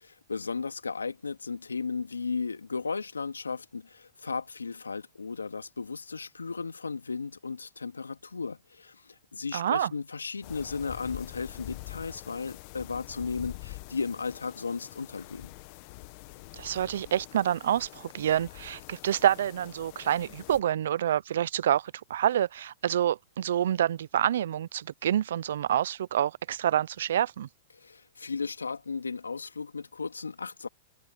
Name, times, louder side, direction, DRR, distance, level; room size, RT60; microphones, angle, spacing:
voice 1, 0.0-15.5 27.7-30.7, left 4 dB, 90° left, 2.6 m, -35 dB
voice 2, 9.5-9.9 16.5-27.5, right 10 dB, 70° right, 0.8 m, -27 dB
sound 1, 10.4-20.6, left 25 dB, 50° left, 1.7 m, -45 dB
hypercardioid pair, 110°, 0 cm